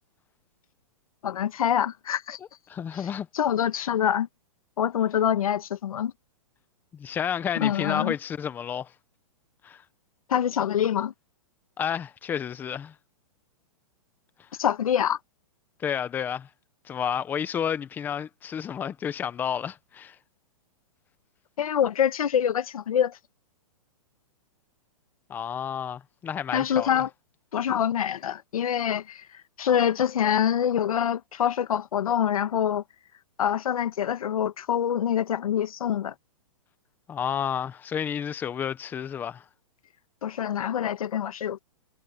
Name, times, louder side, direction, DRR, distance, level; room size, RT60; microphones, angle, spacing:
voice 1, 1.2-2.4 3.3-4.3 4.8-6.1 7.6-8.1 10.3-11.1 14.6-15.2 21.6-23.2 26.5-27.1 27.5-29.3 29.6-32.8 33.4-36.1 40.2-41.6, left 9 dB, 80° left, 1.5 m, -25 dB
voice 2, 2.7-3.3 6.9-8.9 9.6-9.8 11.8-12.9 15.8-16.5 16.8-20.2 25.3-27.0 37.1-39.4, left 8 dB, 10° left, 0.7 m, -31 dB
hypercardioid pair, 165°, 18 cm